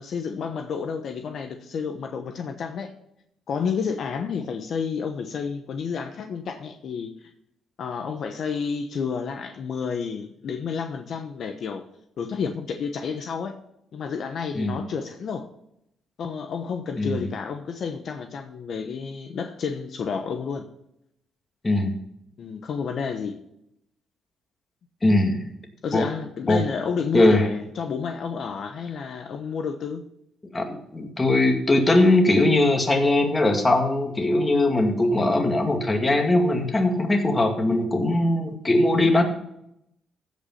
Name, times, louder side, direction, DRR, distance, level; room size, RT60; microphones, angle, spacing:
voice 1, 0.0-2.9 3.5-7.1 7.8-11.8 12.2-13.6 13.9-15.5 16.2-20.6 22.4-23.4 25.8-30.0, left 6 dB, 60° left, 1.0 m, -30 dB
voice 2, 25.0-25.4 25.9-26.0 26.5-26.6 27.1-27.5 30.5-39.2, left 2 dB, 25° left, 2.2 m, -20 dB
15.5 x 5.3 x 5.6 m
cardioid pair, 90°, 0 cm